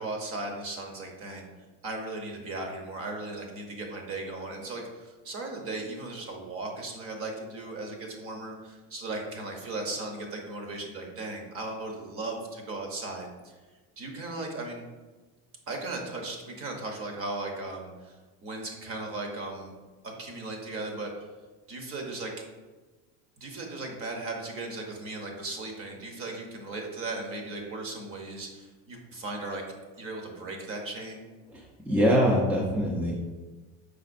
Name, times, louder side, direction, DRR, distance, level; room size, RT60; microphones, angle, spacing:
voice 1, 0.0-1.5 1.8-13.5 14.0-14.8 15.7-19.7 20.0-21.3 21.7-22.3 23.4-29.6 30.0-31.2, right 2 dB, 35° right, 2 dB, 0.8 m, -37 dB
voice 2, 31.5-33.1, equal, 5° right, -4 dB, 0.4 m, -24 dB
5.0 x 3.9 x 2.5 m, 1.3 s
supercardioid pair, 135°, 38 cm